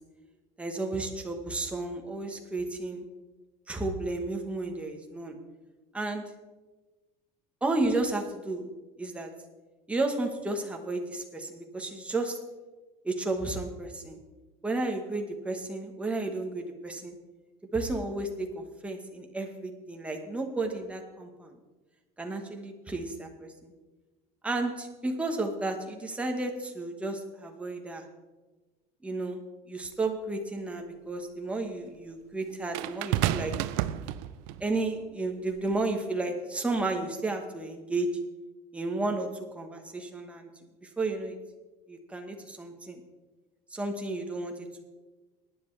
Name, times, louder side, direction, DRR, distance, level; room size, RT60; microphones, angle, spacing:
voice 1, 0.6-3.0 3.7-5.4 5.9-6.2 7.6-8.7 9.0-9.3 9.9-12.4 13.0-14.2 14.6-17.1 17.7-21.5 22.2-23.7 24.4-28.0 29.0-29.4 29.7-33.5 34.6-38.1 38.7-39.3 39.5-40.5 41.0-41.4 41.9-43.0 43.7-44.8, right 2 dB, 5° right, 3 dB, 1.1 m, -32 dB
sound 1, 29.8-29.9 32.7-34.6 35.6-35.8, right 13 dB, 80° right, 0.5 m, -30 dB
18.0 x 10.0 x 3.3 m, 1.2 s
cardioid pair, 165°, 17 cm